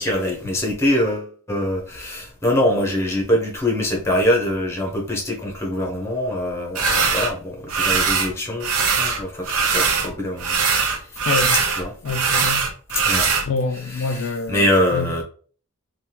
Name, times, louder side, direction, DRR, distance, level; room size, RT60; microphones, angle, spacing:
voice 1, 0.0-10.6 11.1-11.2 11.8-11.9 12.9-13.3 13.9-15.2, left 1 dB, 10° left, 0.8 m, -23 dB
sound 1, 6.7-7.3 7.7-8.3 8.6-10.1 10.4-13.4, right 5 dB, 85° right, 0.7 m, -21 dB
voice 2, 11.3-11.6 12.0-12.7 13.4-15.2, left 3 dB, 60° left, 0.3 m, -26 dB
3.4 x 2.3 x 2.9 m
head